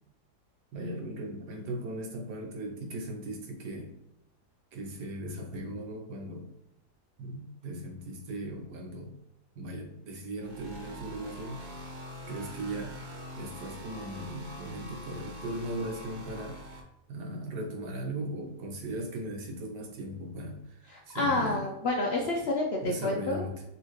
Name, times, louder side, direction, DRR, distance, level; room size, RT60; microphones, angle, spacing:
voice 1, 0.7-3.9 4.7-6.5 7.2-9.1 9.5-11.6 12.3-12.9 13.4-21.7 22.8-23.6, right 1 dB, 90° right, 2 dB, 1.6 m, -38 dB
sound 1, 10.4-16.8, equal, 45° right, 0.6 m, -44 dB
voice 2, 20.9-23.5, left 2 dB, 65° left, -1 dB, 0.6 m, -29 dB
5.5 x 2.9 x 3.1 m, 0.85 s
omnidirectional pair, 1.8 m